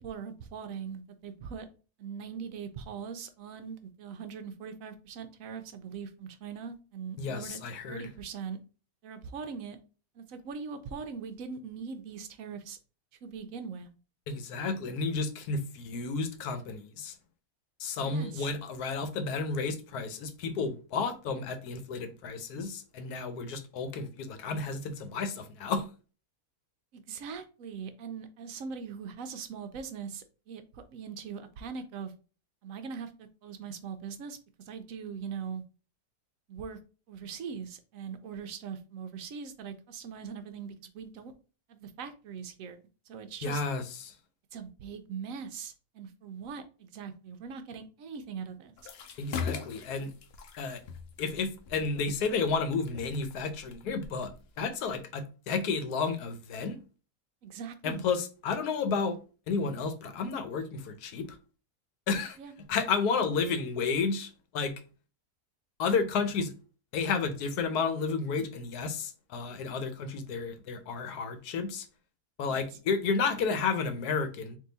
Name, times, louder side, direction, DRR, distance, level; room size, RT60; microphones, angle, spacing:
voice 1, 0.0-1.7 2.0-7.6 7.9-8.6 9.0-9.8 10.1-12.8 13.2-13.9 18.0-18.5 26.9-32.1 32.6-35.6 36.5-36.8 37.1-41.3 41.7-42.8 43.1-43.6 44.5-48.7 57.4-58.0 62.4-62.5 72.5-72.6, right 6 dB, 70° right, 0.9 m, -41 dB
voice 2, 7.2-8.1 14.3-17.1 17.8-25.8 43.4-44.1 49.2-50.1 50.6-50.8 51.2-54.3 54.6-56.8 57.8-59.2 59.5-61.4 62.1-62.4 62.7-64.7 65.8-66.5 66.9-71.9 72.4-74.6, left 4 dB, 85° left, 1.2 m, -31 dB
sound 1, 48.8-55.0, left 6 dB, 65° left, 0.6 m, -42 dB
3.7 x 2.7 x 3.8 m
omnidirectional pair, 1.6 m